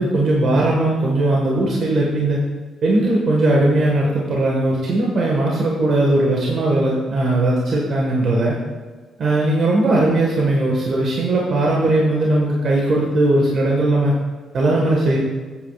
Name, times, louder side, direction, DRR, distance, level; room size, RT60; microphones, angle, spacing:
voice 1, 0.0-2.4 2.8-8.6 9.2-14.1 14.5-15.2, right 2 dB, 60° right, -3 dB, 1.7 m, -18 dB
14.0 x 8.7 x 2.5 m, 1.4 s
cardioid pair, 90°, 0 cm